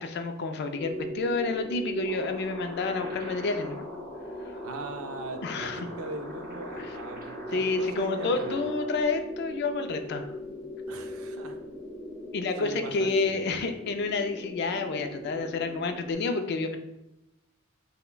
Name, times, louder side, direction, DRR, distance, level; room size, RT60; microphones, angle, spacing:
voice 1, 0.0-3.8 5.4-5.9 6.8-6.9 7.5-10.3 12.3-16.8, left 3 dB, 55° left, 7 dB, 0.3 m, -29 dB
sound 1, 0.8-16.1, equal, 15° left, 0.7 m, -39 dB
sound 2, 2.0-9.0, right 1 dB, 45° right, 0.7 m, -44 dB
voice 2, 4.6-8.6 10.9-11.6 12.6-13.4, right 2 dB, 85° right, 6 dB, 0.4 m, -40 dB
5.4 x 2.1 x 2.2 m, 0.90 s
head